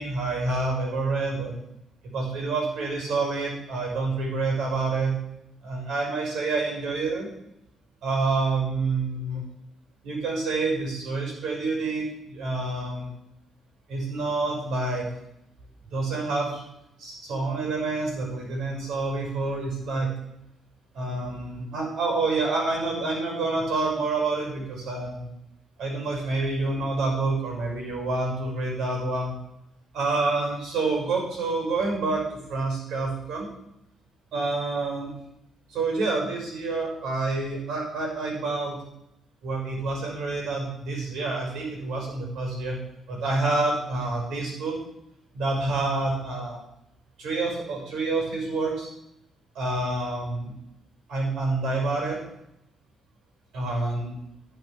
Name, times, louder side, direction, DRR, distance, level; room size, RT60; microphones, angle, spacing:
voice 1, 0.0-1.5 2.0-5.1 5.6-7.3 8.0-9.4 10.0-13.1 13.9-15.1 15.9-16.6 17.0-20.1 20.9-25.3 25.8-29.3 29.9-33.5 34.3-35.1 35.7-38.8 39.4-42.8 43.1-44.8 45.3-46.6 47.2-48.9 49.5-50.5 51.1-52.2 53.5-54.1, right 3 dB, 75° right, 0 dB, 5.9 m, -28 dB
11.5 x 6.8 x 7.2 m, 0.81 s
cardioid pair, 90°, 0 cm